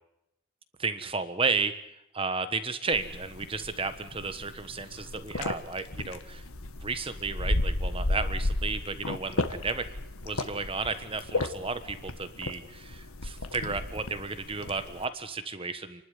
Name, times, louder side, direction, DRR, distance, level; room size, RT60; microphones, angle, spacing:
voice 1, 0.8-1.7 2.1-6.4 6.8-9.9 10.2-16.0, right 4 dB, 25° right, 11 dB, 1.4 m, -33 dB
sound 1, 2.9-15.0, left 2 dB, 80° left, 1.6 m, -34 dB
28.0 x 12.0 x 9.6 m, 0.81 s
head